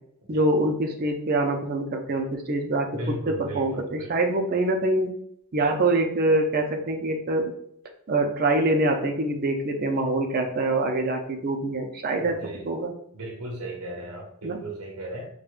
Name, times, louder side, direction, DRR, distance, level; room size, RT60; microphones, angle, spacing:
voice 1, 0.3-5.1 5.5-7.5 8.1-12.9 14.4-14.6, right 2 dB, 40° right, 3 dB, 0.5 m, -25 dB
voice 2, 2.9-4.1 12.2-12.8 13.1-15.3, right 1 dB, 80° right, 0 dB, 0.7 m, -36 dB
4.5 x 2.2 x 2.4 m, 0.70 s
head